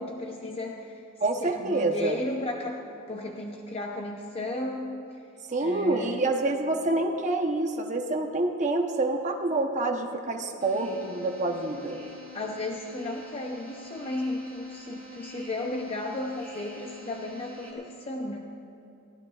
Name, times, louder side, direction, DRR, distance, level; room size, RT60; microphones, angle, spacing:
voice 1, 0.0-1.0 1.4-2.8 3.1-4.9 5.6-6.2 12.3-18.5, left 2 dB, 25° left, 1 dB, 0.7 m, -34 dB
voice 2, 1.2-2.2 5.5-12.0, right 2 dB, 35° right, 3 dB, 0.9 m, -27 dB
sound 1, 10.6-17.7, left 1 dB, 10° left, 2.5 m, -46 dB
22.0 x 16.0 x 2.4 m, 2.6 s
head